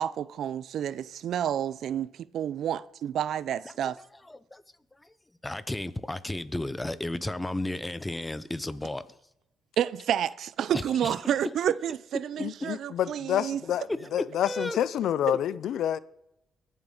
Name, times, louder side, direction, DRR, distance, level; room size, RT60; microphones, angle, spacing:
voice 1, 0.0-4.0 9.8-13.6, right 10 dB, 70° right, 0.4 m, -30 dB
voice 2, 3.6-4.6 5.4-9.1 10.7-11.6 12.4-12.8 13.7-14.8 15.3-15.4, left 1 dB, 10° left, 0.8 m, -34 dB
voice 3, 12.4-16.0, left 10 dB, 75° left, 0.4 m, -28 dB
21.5 x 7.3 x 3.9 m
cardioid pair, 90°, 0 cm